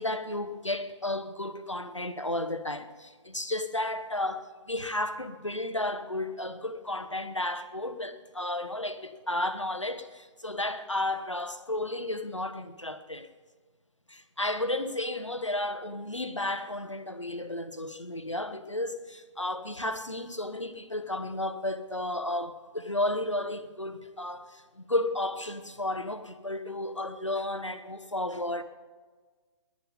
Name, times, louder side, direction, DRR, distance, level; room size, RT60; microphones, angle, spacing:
voice 1, 0.0-13.3 14.1-28.6, left 1 dB, 90° left, 1.3 m, -33 dB
17.0 x 11.5 x 5.4 m
figure-of-eight pair, 135°, 15 cm